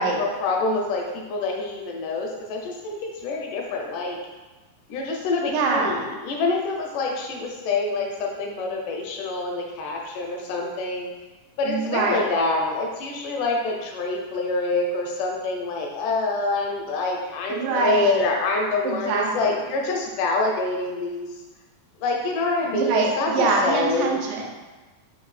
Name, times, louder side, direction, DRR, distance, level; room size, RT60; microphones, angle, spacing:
voice 1, 0.0-4.2 4.9-11.1 11.6-21.4 22.0-24.2, left 3 dB, 80° left, 1 dB, 2.0 m, -26 dB
voice 2, 5.5-6.0 11.7-12.2 17.5-18.2 18.8-19.5 22.7-24.5, right 4 dB, 90° right, 0 dB, 2.3 m, -24 dB
5.7 x 2.3 x 3.1 m, 1.2 s
omnidirectional pair, 3.8 m